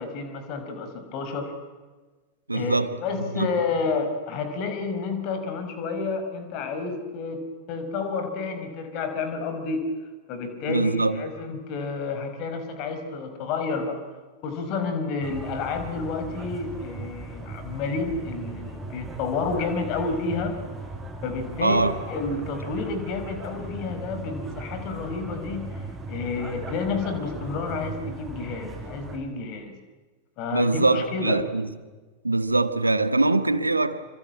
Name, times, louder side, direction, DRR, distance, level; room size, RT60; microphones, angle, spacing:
voice 1, 0.0-1.5 2.5-2.8 3.0-7.4 7.7-9.8 10.3-14.0 14.4-20.6 21.2-29.8 30.4-31.4, left 4 dB, 40° left, 5.3 m, -30 dB
voice 2, 2.5-2.9 3.3-3.5 10.7-11.2 21.6-21.9 30.5-31.7 32.2-34.1, right 2 dB, 80° right, 1.5 m, -23 dB
sound 1, 15.2-29.2, right 3 dB, 10° right, 6.7 m, -38 dB
26.5 x 25.0 x 8.9 m
figure-of-eight pair, 90°, 0 cm